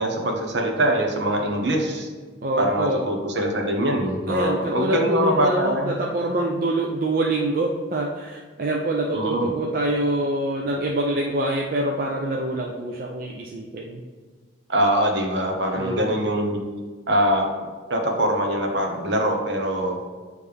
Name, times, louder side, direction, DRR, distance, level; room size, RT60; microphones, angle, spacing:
voice 1, 0.0-2.1 2.6-6.0 9.1-9.5 14.7-16.6 17.1-20.0, right 1 dB, 65° right, 2 dB, 0.9 m, -23 dB
voice 2, 2.4-3.0 4.3-14.0 15.7-16.2, right 1 dB, 45° right, 0 dB, 0.4 m, -25 dB
8.7 x 3.2 x 3.4 m, 1.5 s
head